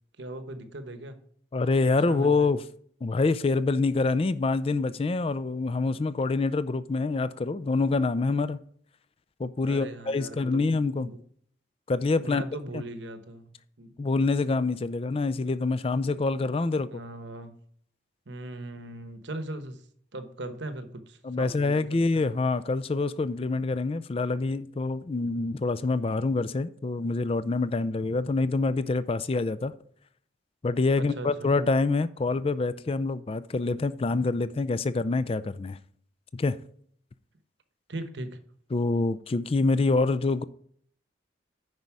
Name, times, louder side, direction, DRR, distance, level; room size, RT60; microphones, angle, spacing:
voice 1, 0.2-1.2 1.9-2.5 9.6-10.7 10.9-11.2 12.2-13.9 16.9-17.5 18.3-19.8 20.1-22.2 31.0-31.5 37.9-38.4, right 2 dB, 70° right, 1.0 m, -39 dB
voice 2, 1.5-2.6 3.0-8.6 9.4-11.1 11.9-12.4 12.7-12.8 14.0-17.0 21.2-29.7 30.6-35.8 36.3-36.6 38.7-40.4, left 3 dB, 30° left, 0.4 m, -26 dB
9.6 x 5.3 x 4.7 m
head